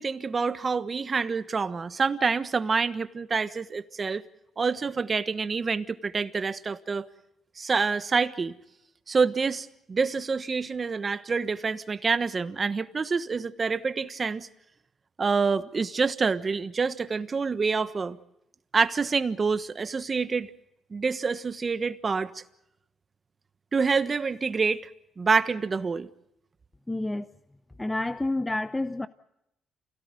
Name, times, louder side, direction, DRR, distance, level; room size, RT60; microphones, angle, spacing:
voice 1, 0.0-4.2 4.6-7.1 7.6-8.5 9.1-14.5 15.2-18.2 18.7-20.5 20.9-22.4 23.7-24.9 25.2-26.1, right 5 dB, 35° right, 1.3 m, -27 dB
voice 2, 26.9-27.3 27.8-29.1, left 2 dB, 15° left, 0.8 m, -29 dB
28.0 x 17.5 x 7.8 m
cardioid pair, 90°, 0 cm